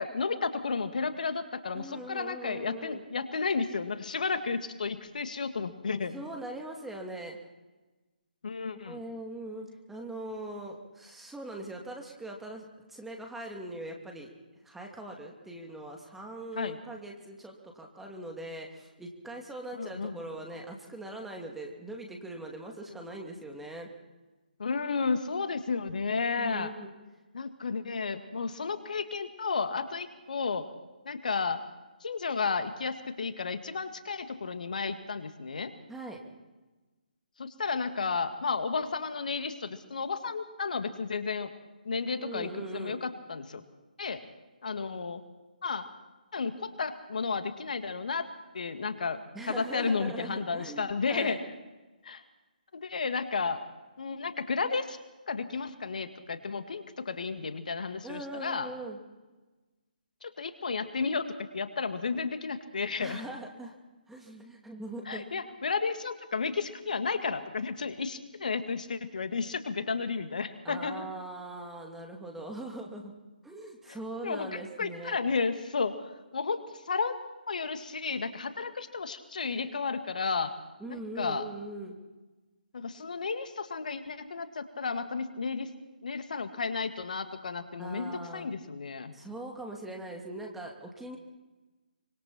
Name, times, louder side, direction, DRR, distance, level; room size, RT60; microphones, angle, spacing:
voice 1, 0.0-6.2 8.4-9.0 16.6-16.8 19.8-20.2 24.6-26.7 27.3-30.7 31.1-31.6 32.0-35.7 37.4-41.5 41.9-43.6 44.0-44.2 44.6-45.2 45.6-45.9 46.3-48.3 48.5-49.2 49.5-51.4 52.0-52.2 52.7-53.6 54.0-55.0 55.3-58.7 60.2-63.2 65.1-71.1 73.9-75.9 76.3-77.1 77.5-80.5 80.9-81.4 82.7-85.7 86.0-89.1, left 4 dB, 60° left, 8 dB, 1.9 m, -32 dB
voice 2, 1.7-3.0 6.1-7.4 8.8-14.3 14.6-23.9 26.4-26.9 35.9-36.2 42.2-43.0 49.3-51.4 58.0-59.0 63.0-63.8 64.1-65.2 70.6-73.1 73.4-75.2 80.8-82.0 87.8-88.5 89.1-91.2, right 1 dB, 5° right, 1 dB, 2.6 m, -41 dB
25.0 x 24.5 x 4.4 m, 1.2 s
figure-of-eight pair, 145°, 5 cm